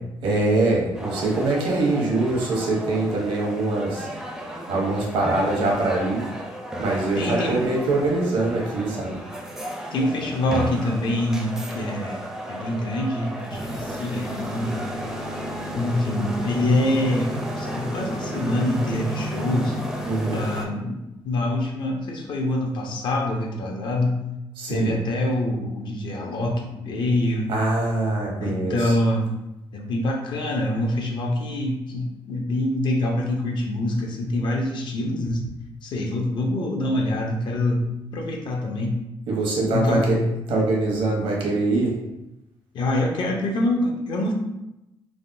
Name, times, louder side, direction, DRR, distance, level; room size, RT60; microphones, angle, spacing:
voice 1, 0.2-4.1 4.7-6.3 6.8-9.1 20.0-20.4 24.6-24.9 27.5-28.9 39.3-40.1 40.5-42.0, right 2 dB, 85° right, -2 dB, 0.9 m, -23 dB
sound 1, 1.0-20.6, equal, 5° right, 0.4 m, -33 dB
voice 2, 7.2-7.6 9.9-12.2 12.5-14.8 15.7-19.8 20.3-24.2 24.7-27.5 28.4-29.3 29.7-35.5 35.8-37.8 38.1-39.0 39.7-40.3 42.7-44.3, left 1 dB, 60° left, 0 dB, 0.6 m, -25 dB
3.4 x 2.1 x 2.6 m, 0.93 s
cardioid pair, 120°, 9 cm